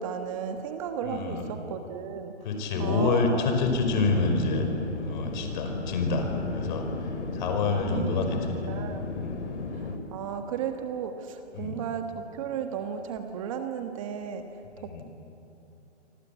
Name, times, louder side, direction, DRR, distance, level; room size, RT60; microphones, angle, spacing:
voice 1, 0.0-2.3 2.8-3.5 7.8-8.4 8.7-9.0 9.7-14.5 14.8-15.0, right 7 dB, 30° right, 6 dB, 1.4 m, -34 dB
voice 2, 1.0-1.5 2.4-4.7 5.0-6.3 6.5-6.9 7.3-8.9 9.2-9.4 11.5-11.8 14.8-15.0, left 3 dB, 40° left, 5 dB, 5.2 m, -27 dB
sound 1, 3.6-10.0, left 4 dB, 75° left, 4.1 m, -35 dB
28.0 x 24.5 x 8.4 m, 2.9 s
hypercardioid pair, 155°, 35 cm